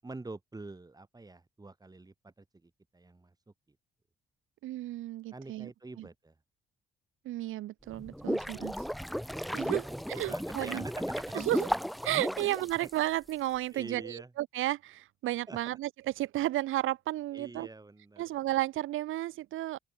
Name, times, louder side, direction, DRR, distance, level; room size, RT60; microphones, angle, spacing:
voice 1, 0.0-3.3 3.7-3.8 5.3-6.3 9.8-10.0 10.3-11.4 12.4-12.5 13.7-14.3 15.5-15.6 17.3-18.2, right 3 dB, 20° right, 6.2 m, -46 dB
voice 2, 4.6-5.7 6.0-6.1 7.2-8.7 9.5-10.8 11.3-11.7 12.0-17.7 18.2-19.8, right 15 dB, 85° right, 2.5 m, -33 dB
sound 1, 7.9-13.3, equal, ahead, 0.5 m, -34 dB
open air
cardioid pair, 90°, 20 cm